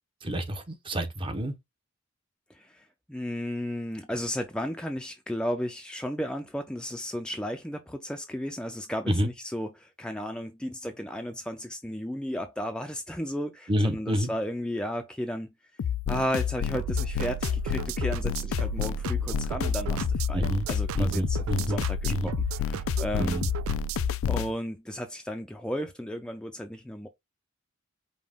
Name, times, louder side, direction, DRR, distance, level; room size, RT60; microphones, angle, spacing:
voice 1, 0.2-1.5 9.1-9.3 13.7-14.3 20.3-20.7 20.9-21.8 22.1-22.3 23.1-23.5, equal, 25° right, 0.7 m, -28 dB
voice 2, 2.5-15.5 16.1-23.4 24.3-27.1, equal, 5° left, 0.4 m, -34 dB
sound 1, 15.8-24.5, left 8 dB, 90° left, 0.3 m, -29 dB
sound 2, 16.7-24.1, right 8 dB, 90° right, 0.3 m, -34 dB
5.2 x 2.1 x 3.5 m
head